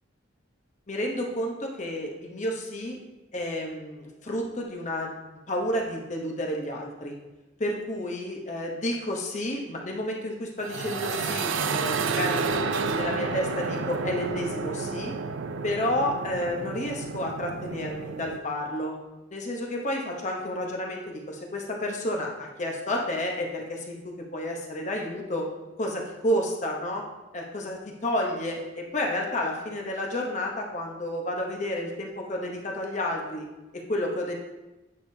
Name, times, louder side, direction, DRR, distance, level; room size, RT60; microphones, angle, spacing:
voice 1, 0.9-3.0 3.3-5.1 5.5-7.1 7.6-12.5 12.9-15.1 15.6-19.0 19.3-25.5 25.8-27.0 27.3-33.4 33.7-34.3, left 1 dB, 35° left, 0 dB, 0.8 m, -30 dB
sound 1, 10.6-18.4, right 4 dB, 75° right, 0.4 m, -30 dB
8.4 x 5.0 x 2.7 m, 1.0 s
head